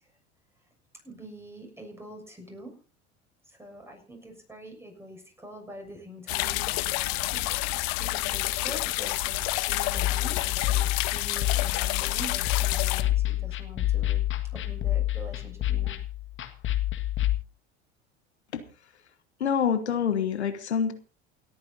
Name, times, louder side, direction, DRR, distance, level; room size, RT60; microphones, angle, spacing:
voice 1, 1.0-2.7 3.5-7.0 7.3-14.2 14.5-16.0, right 1 dB, 10° right, 3 dB, 6.9 m, -45 dB
sound 1, 6.3-13.0, left 19 dB, 55° left, 1.2 m, -29 dB
sound 2, 10.0-17.4, left 14 dB, 35° left, 1.9 m, -28 dB
voice 2, 19.4-20.9, left 7 dB, 80° left, 10 dB, 1.3 m, -26 dB
28.5 x 9.6 x 2.8 m, 0.35 s
figure-of-eight pair, 75°, 33 cm